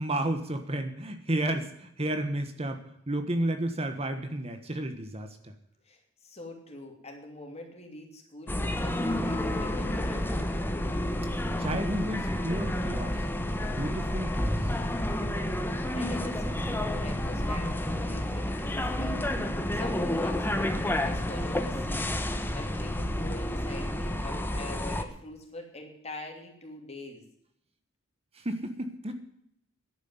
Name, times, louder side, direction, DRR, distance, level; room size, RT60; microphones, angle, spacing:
voice 1, 0.0-5.5 11.6-13.2 13.7-14.6 28.3-29.1, right 1 dB, 30° right, 7 dB, 1.3 m, -32 dB
voice 2, 5.8-10.5 15.9-19.2 19.7-22.2 22.5-27.2, left 1 dB, 35° left, 3 dB, 3.2 m, -43 dB
sound 1, 8.5-25.0, left 1 dB, 10° left, 1.2 m, -30 dB
11.0 x 9.5 x 9.5 m, 0.73 s
head